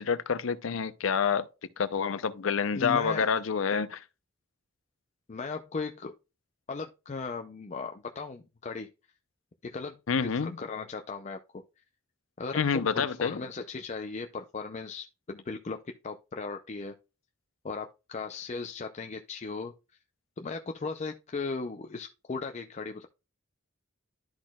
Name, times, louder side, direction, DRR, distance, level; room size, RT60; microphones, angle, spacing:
voice 1, 0.0-1.5 1.8-4.0 10.1-10.6 12.5-13.4, left 6 dB, 80° left, 0.6 m, -28 dB
voice 2, 2.7-3.3 5.3-6.1 6.7-8.9 9.6-11.6 12.4-16.9 17.6-19.7 20.4-23.1, left 4 dB, 35° left, 0.5 m, -37 dB
12.0 x 4.2 x 2.3 m
head